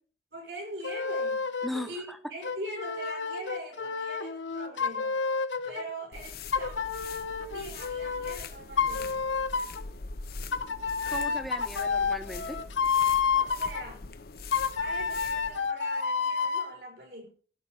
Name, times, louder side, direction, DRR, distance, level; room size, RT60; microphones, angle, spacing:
voice 1, 0.3-1.4 1.9-5.2 5.6-6.8 7.4-9.3 13.3-14.1 14.8-17.3, right 1 dB, 65° right, 5.3 m, -42 dB
sound 1, 0.8-1.9 2.4-5.9 6.5-8.4 8.8-9.8 10.5-13.8 14.5-16.7, left 5 dB, 85° left, 0.9 m, -29 dB
voice 2, 1.6-2.2 11.1-12.6, left 1 dB, ahead, 1.0 m, -37 dB
sound 2, 6.1-15.7, left 4 dB, 55° left, 0.7 m, -43 dB
15.5 x 5.4 x 6.4 m
head